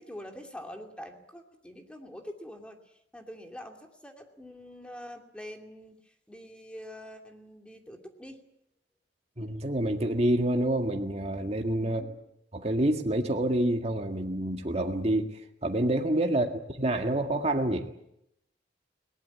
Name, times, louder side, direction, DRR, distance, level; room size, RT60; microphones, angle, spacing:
voice 1, 0.0-8.4 11.8-12.2 16.3-16.6, equal, 5° left, 3 dB, 2.6 m, -45 dB
voice 2, 9.4-12.0 12.5-17.9, right 1 dB, 35° right, 3 dB, 1.9 m, -27 dB
21.5 x 19.0 x 9.5 m, 0.79 s
head